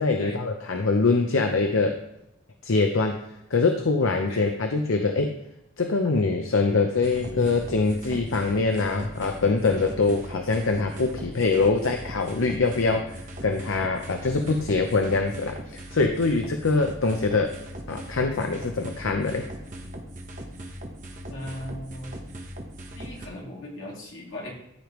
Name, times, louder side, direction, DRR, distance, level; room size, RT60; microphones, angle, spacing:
voice 1, 0.0-2.0 2.6-3.2 3.5-5.3 5.8-13.2 13.4-17.6 17.9-19.5, left 3 dB, 90° left, 4 dB, 0.7 m, -24 dB
sound 1, 7.0-23.3, right 1 dB, 40° right, 1.1 m, -39 dB
voice 2, 21.3-22.1 22.9-24.5, left 1 dB, 75° left, -4 dB, 2.6 m, -38 dB
14.0 x 5.1 x 3.1 m, 0.84 s
head